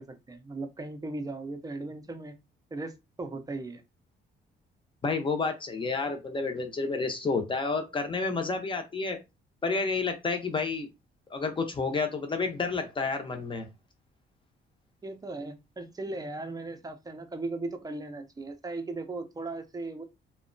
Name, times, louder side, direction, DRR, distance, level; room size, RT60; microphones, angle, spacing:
voice 1, 0.0-2.4 2.7-2.9 3.2-3.8 15.0-20.0, right 2 dB, 20° right, 0.5 m, -37 dB
voice 2, 5.0-9.2 9.6-10.9 11.3-13.7, left 4 dB, 25° left, 0.7 m, -30 dB
2.7 x 2.2 x 2.5 m
cardioid pair, 90°, 20 cm